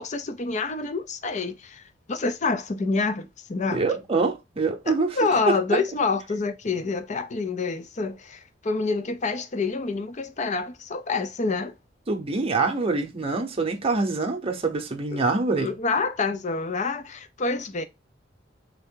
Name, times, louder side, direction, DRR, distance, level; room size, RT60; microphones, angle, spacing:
voice 1, 0.0-1.8 2.1-3.9 4.9-11.7 15.1-15.2 15.6-17.8, left 4 dB, 40° left, 0.5 m, -27 dB
voice 2, 3.7-5.2 5.5-5.8 12.1-15.7, right 3 dB, 30° right, 0.8 m, -25 dB
3.5 x 3.3 x 3.6 m
head